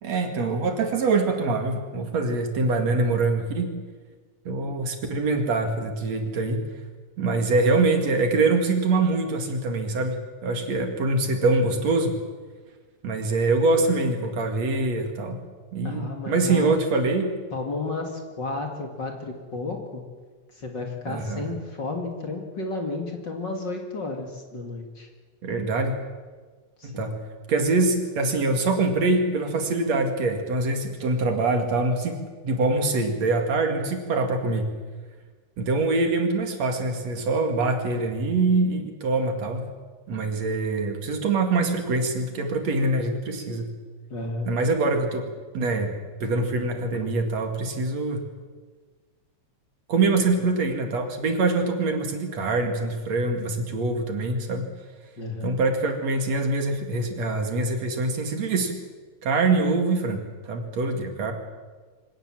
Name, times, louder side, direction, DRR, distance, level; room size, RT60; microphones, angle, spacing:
voice 1, 0.0-3.7 4.4-6.6 7.2-12.2 13.0-15.4 15.7-17.3 21.1-21.5 25.4-25.9 26.8-27.2 27.5-34.7 35.6-39.6 40.1-43.7 44.5-45.3 45.5-45.9 46.2-48.3 49.9-54.6 55.4-58.7 59.2-61.3, right 3 dB, 65° right, 4 dB, 3.4 m, -24 dB
voice 2, 15.8-16.7 17.5-20.0 20.5-25.1 26.8-27.1 44.1-44.5 55.2-55.5, left 3 dB, 40° left, 3 dB, 2.6 m, -32 dB
24.5 x 18.0 x 7.6 m, 1.4 s
omnidirectional pair, 3.4 m